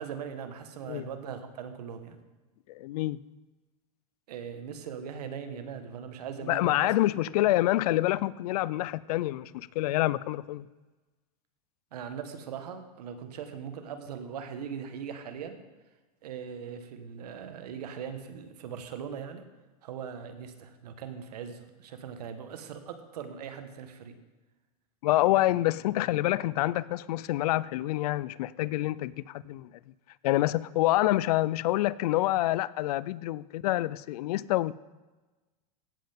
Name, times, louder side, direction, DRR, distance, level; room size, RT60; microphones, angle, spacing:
voice 1, 0.0-2.2 4.3-6.9 7.3-7.4 11.9-15.6 16.2-19.4 19.8-24.2, right 7 dB, 85° right, 1.4 m, -40 dB
voice 2, 2.7-3.2 6.5-10.7 25.0-29.7 30.2-34.7, left 16 dB, 75° left, 0.4 m, -27 dB
16.5 x 7.7 x 3.6 m
supercardioid pair, 125°, 20 cm